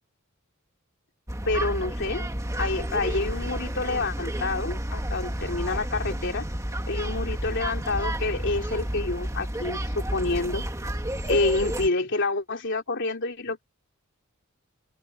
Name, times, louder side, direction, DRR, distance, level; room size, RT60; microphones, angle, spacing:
sound 1, 1.3-11.9, right 1 dB, 15° right, 1.8 m, -31 dB
voice 1, 1.4-2.3 2.6-6.4 6.9-10.6 11.3-13.6, left 3 dB, 60° left, 3.1 m, -28 dB
open air
head